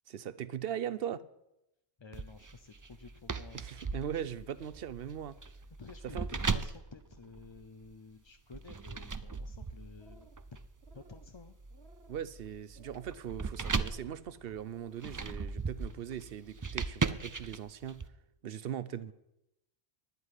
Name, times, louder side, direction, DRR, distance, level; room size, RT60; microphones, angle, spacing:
voice 1, 0.1-1.2 3.5-5.4 6.0-6.4 12.1-18.0 18.4-19.1, right 9 dB, 65° right, 16 dB, 0.9 m, -40 dB
voice 2, 2.0-3.6 5.8-10.3 10.9-11.6 19.1-19.2, left 4 dB, 35° left, 8 dB, 0.5 m, -52 dB
sound 1, 2.1-7.9 8.5-18.1, right 4 dB, 35° right, 0.3 m, -38 dB
sound 2, 9.8-10.5 10.7-11.3 11.7-12.3 12.7-13.2 13.6-14.1 14.5-15.0, right 4 dB, 80° right, 1.4 m, -61 dB
11.0 x 8.2 x 9.7 m, 0.88 s
omnidirectional pair, 1.1 m